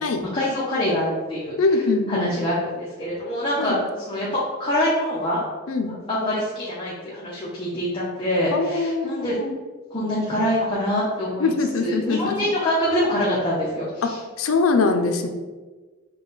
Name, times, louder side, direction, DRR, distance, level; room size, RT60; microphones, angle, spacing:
voice 1, 0.2-4.3 4.6-5.4 5.9-9.3 9.9-11.5 11.8-14.2, left 1 dB, 20° left, -7 dB, 0.7 m, -25 dB
voice 2, 1.6-2.4 3.6-3.8 5.7-5.9 8.5-9.6 11.4-12.5 14.4-15.3, left 3 dB, 70° left, 5 dB, 0.5 m, -23 dB
5.5 x 2.3 x 3.9 m, 1.3 s
head